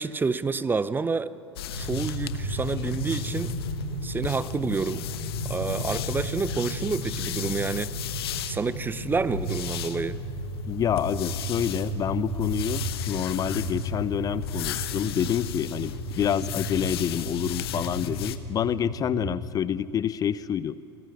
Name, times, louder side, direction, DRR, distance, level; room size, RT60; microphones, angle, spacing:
voice 1, 0.0-1.3 1.8-3.6 4.0-5.0 5.5-7.9 8.5-10.2, right 4 dB, 15° right, 17 dB, 0.7 m, -28 dB
sound 1, 1.6-18.4, left 11 dB, 65° left, 1.2 m, -36 dB
sound 2, 1.7-19.4, right 1 dB, 75° right, 7.9 m, -34 dB
voice 2, 10.7-20.8, left 9 dB, 25° left, 18 dB, 0.6 m, -28 dB
28.0 x 18.0 x 8.6 m, 2.8 s
figure-of-eight pair, 80°, 14 cm